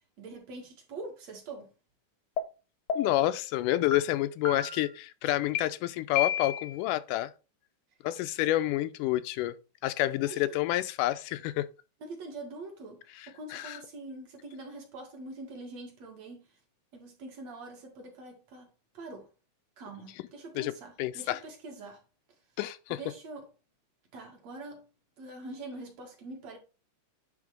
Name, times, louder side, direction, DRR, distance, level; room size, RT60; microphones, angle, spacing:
voice 1, 0.2-1.7 10.2-10.5 12.0-16.5 16.9-19.3 19.8-22.0 22.9-23.5 24.1-24.9 25.2-26.6, right 2 dB, 55° right, 3.2 m, -44 dB
sound 1, 2.4-2.5 2.9-3.3 3.9-4.0 4.5-4.9 5.6-5.7 6.2-6.8, left 8 dB, 65° left, 1.4 m, -31 dB
voice 2, 3.0-7.3 8.0-9.6 9.8-11.7 13.2-13.8 20.6-20.7 21.0-21.4 22.6-23.0, left 15 dB, 85° left, 2.1 m, -29 dB
9.8 x 3.6 x 5.0 m
omnidirectional pair, 3.7 m